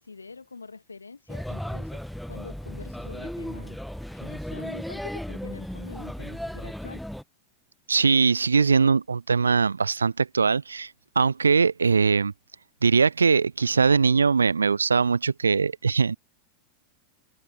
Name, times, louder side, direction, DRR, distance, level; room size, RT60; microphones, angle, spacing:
voice 1, 0.0-2.0 2.3-3.8 4.1-7.0, left 4 dB, 75° left, 2.3 m, -44 dB
Male speech man speaking / Child speech kid speaking / Chatter, 1.3-7.2, equal, ahead, 1.2 m, -35 dB
voice 2, 7.9-10.9 11.2-12.3 12.8-16.2, right 5 dB, 75° right, 0.4 m, -21 dB
figure-of-eight pair, 90°, 0 cm